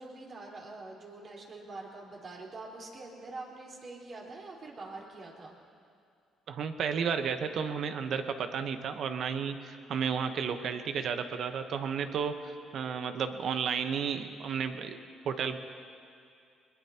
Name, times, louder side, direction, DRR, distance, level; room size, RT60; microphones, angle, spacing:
voice 1, 0.0-5.5, right 3 dB, 50° right, -3 dB, 4.5 m, -45 dB
voice 2, 6.5-12.3 12.7-15.0 15.2-15.6, right 6 dB, 65° right, 8 dB, 1.1 m, -32 dB
23.0 x 21.0 x 3.0 m, 2.4 s
supercardioid pair, 75°, 0 cm